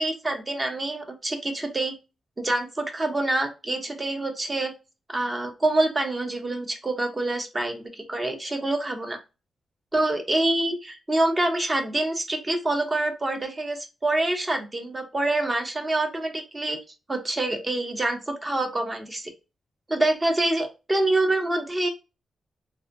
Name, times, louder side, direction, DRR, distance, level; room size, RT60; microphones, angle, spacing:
voice 1, 0.0-1.9 2.4-4.7 5.1-9.2 9.9-16.8 17.1-19.3 19.9-21.9, right 2 dB, 25° right, 4 dB, 0.8 m, -26 dB
3.5 x 2.5 x 2.5 m, 0.28 s
cardioid pair, 95°, 0 cm